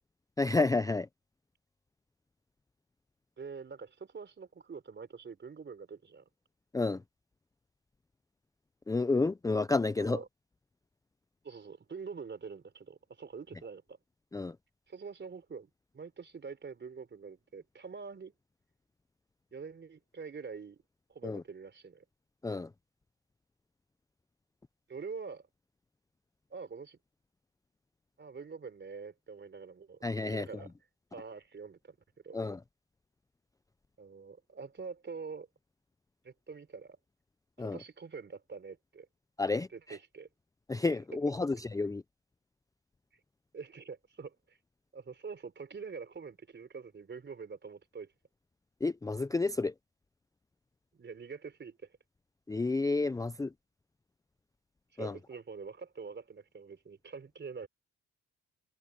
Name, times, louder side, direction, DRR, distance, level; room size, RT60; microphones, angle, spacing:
voice 1, 0.4-1.1 6.7-7.0 8.9-10.2 14.3-14.5 21.2-21.4 22.4-22.7 30.0-30.5 32.3-32.6 37.6-37.8 39.4-39.7 40.7-42.0 48.8-49.7 52.5-53.5 55.0-55.2, left 3 dB, 10° left, 0.5 m, -30 dB
voice 2, 3.4-6.2 10.0-10.3 11.4-14.0 14.9-18.3 19.5-20.8 21.1-22.0 24.9-25.5 26.5-27.0 28.2-30.7 31.1-32.0 32.2-32.4 34.0-35.5 36.2-37.0 37.6-39.1 39.7-40.3 43.5-44.6 44.9-48.1 50.9-51.8 54.9-57.7, right 5 dB, 35° right, 4.0 m, -45 dB
cardioid pair, 90°, 30 cm